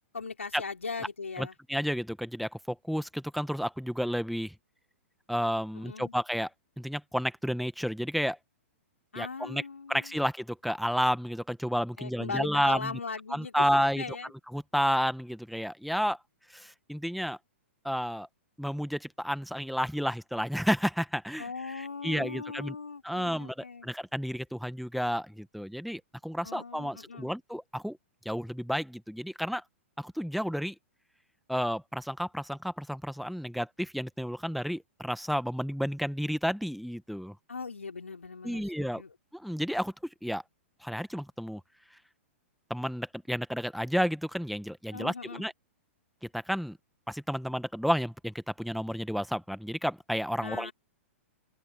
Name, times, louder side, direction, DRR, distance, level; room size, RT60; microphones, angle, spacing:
voice 1, 0.0-1.6 5.7-6.1 9.1-10.2 12.0-13.7 14.0-14.3 21.4-23.9 26.4-27.3 37.5-39.1 44.9-45.4 50.4-50.7, left 4 dB, 80° left, 3.6 m, -39 dB
voice 2, 1.4-4.5 5.3-6.5 6.8-8.4 9.1-9.6 9.9-13.0 13.3-14.0 14.5-16.2 16.5-17.4 17.8-18.3 18.6-22.7 23.0-28.0 28.2-29.6 30.0-30.7 31.5-37.3 38.4-39.0 39.3-39.9 40.2-40.4 40.8-41.6 42.7-45.5 46.2-46.8 47.1-50.7, equal, ahead, 1.5 m, -31 dB
open air
figure-of-eight pair, 110°, 7 cm